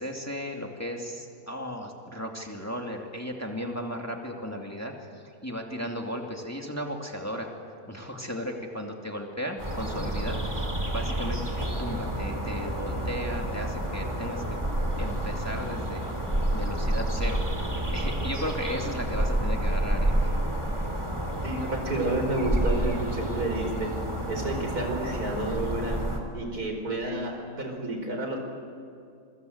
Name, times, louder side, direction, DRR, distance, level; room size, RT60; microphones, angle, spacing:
voice 1, 0.0-7.5 7.9-11.4 11.8-14.6 15.0-16.0 16.5-20.1, equal, 10° left, 1 dB, 2.5 m, -35 dB
sound 1, 9.6-26.2, right 1 dB, 20° right, 3.3 m, -29 dB
voice 2, 21.4-23.9 24.3-26.0 26.3-28.4, right 2 dB, 85° right, 2 dB, 5.3 m, -30 dB
26.5 x 23.5 x 8.1 m, 2.4 s
omnidirectional pair, 1.6 m